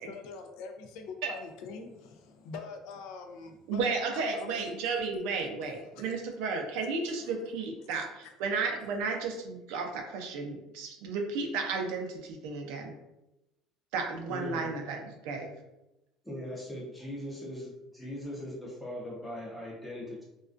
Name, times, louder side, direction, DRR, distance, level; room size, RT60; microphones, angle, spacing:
voice 1, 0.0-4.7 5.5-6.1 7.3-7.4 7.8-8.3, left 4 dB, 70° left, 5 dB, 0.3 m, -45 dB
voice 2, 3.7-13.0 13.9-15.5, right 4 dB, 80° right, 2 dB, 0.4 m, -33 dB
voice 3, 14.3-14.7 16.2-20.2, equal, 5° left, -3 dB, 0.5 m, -40 dB
2.3 x 2.2 x 2.4 m, 0.94 s
cardioid pair, 165°, 0 cm